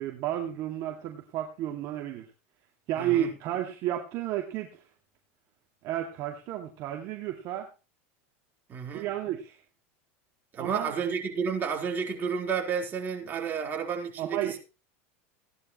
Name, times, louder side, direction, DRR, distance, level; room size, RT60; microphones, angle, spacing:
voice 1, 0.0-2.3 2.9-4.7 5.8-7.7 8.9-9.6 10.6-10.9 14.2-14.6, right 12 dB, 50° right, 2.2 m, -32 dB
voice 2, 3.0-3.3 8.7-9.1 10.5-14.6, right 6 dB, 25° right, 4.3 m, -31 dB
17.0 x 11.0 x 3.2 m
supercardioid pair, 135°, 7 cm